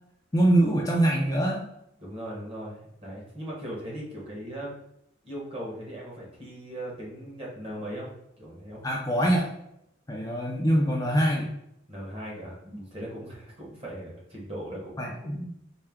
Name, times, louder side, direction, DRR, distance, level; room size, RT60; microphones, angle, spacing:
voice 1, 0.3-1.7 8.8-9.5 10.1-11.5 15.0-15.5, right 1 dB, 15° left, -2 dB, 0.4 m, -24 dB
voice 2, 2.0-4.8 5.2-8.1 8.4-8.8 11.9-15.2, equal, 30° right, -3 dB, 1.1 m, -38 dB
4.3 x 2.2 x 3.5 m, 0.81 s
head